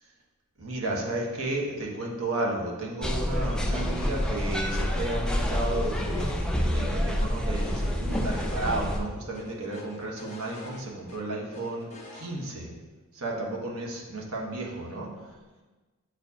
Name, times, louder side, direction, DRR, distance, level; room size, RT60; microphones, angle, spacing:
voice 1, 0.6-12.7 13.1-15.1, right 2 dB, 70° right, -2 dB, 1.2 m, -33 dB
sound 1, 3.0-9.0, equal, 5° left, 0.3 m, -28 dB
sound 2, 3.7-4.3 4.5-4.6 5.0-6.8 7.2-8.6 8.9-9.0 9.3-11.2 11.5-12.3, left 1 dB, 30° left, 1.0 m, -46 dB
7.7 x 4.3 x 2.8 m, 1.3 s
head